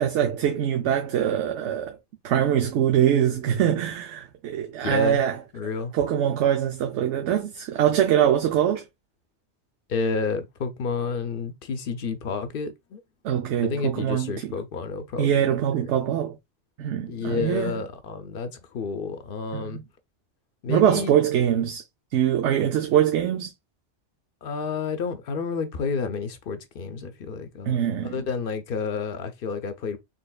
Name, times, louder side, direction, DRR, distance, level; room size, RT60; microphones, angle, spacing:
voice 1, 0.0-2.0 2.2-5.4 5.9-8.8 13.2-14.5 15.2-16.4 16.8-17.7 19.5-19.8 20.7-21.8 22.1-23.5 27.7-28.2, right 10 dB, 80° right, 0.9 m, -23 dB
voice 2, 4.8-5.2 5.5-5.9 9.9-13.0 13.6-15.9 17.1-19.8 20.6-21.1 24.4-30.0, left 5 dB, 60° left, 0.7 m, -30 dB
4.3 x 3.2 x 2.2 m
omnidirectional pair, 1.2 m